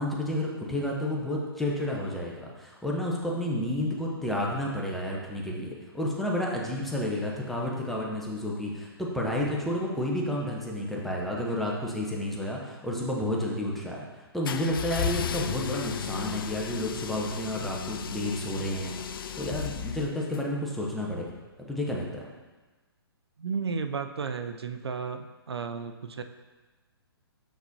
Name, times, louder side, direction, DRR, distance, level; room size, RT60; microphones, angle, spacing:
voice 1, 0.0-18.9 19.4-21.3 21.7-22.2, left 1 dB, ahead, -3 dB, 0.8 m, -31 dB
sound 1, 14.4-20.4, left 8 dB, 60° left, 0.4 m, -34 dB
voice 2, 23.4-26.2, right 5 dB, 80° right, 8 dB, 0.4 m, -33 dB
6.7 x 6.0 x 2.7 m, 1.3 s
figure-of-eight pair, 130°, 13 cm